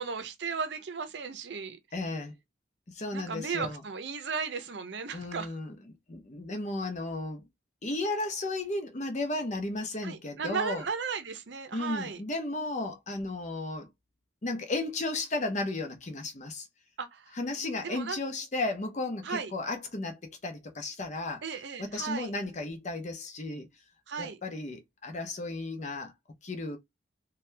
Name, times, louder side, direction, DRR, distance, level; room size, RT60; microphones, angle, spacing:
voice 1, 0.0-1.8 3.1-5.5 10.0-12.2 17.0-17.4 17.8-18.2 19.2-19.5 21.4-22.3 24.1-24.4, right 5 dB, 65° right, 0.6 m, -35 dB
voice 2, 1.9-2.3 2.9-3.8 5.1-7.4 7.8-10.8 11.7-13.9 14.4-16.7 17.3-21.4 21.8-23.7 24.2-26.1 26.4-26.8, left 2 dB, 40° left, 0.7 m, -34 dB
2.7 x 2.3 x 3.3 m
head